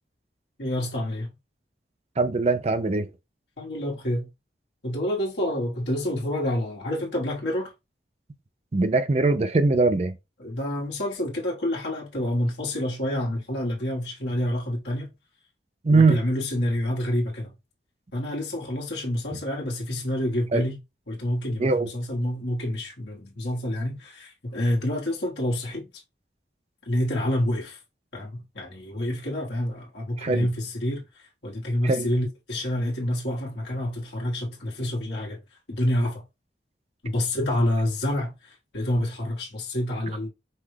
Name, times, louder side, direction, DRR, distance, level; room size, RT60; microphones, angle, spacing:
voice 1, 0.6-1.3 3.6-4.3 4.8-7.7 10.4-15.1 15.9-17.5 18.1-20.8 21.1-25.9 26.8-27.8 28.1-31.1 31.4-35.4 35.7-36.2 37.0-40.3, left 1 dB, 70° left, 1.5 m, -28 dB
voice 2, 2.2-3.1 8.7-10.2 15.8-16.2 20.5-20.6 21.6-21.9 30.2-30.5 31.8-32.1, right 3 dB, 35° right, 0.4 m, -21 dB
5.4 x 2.3 x 3.2 m
head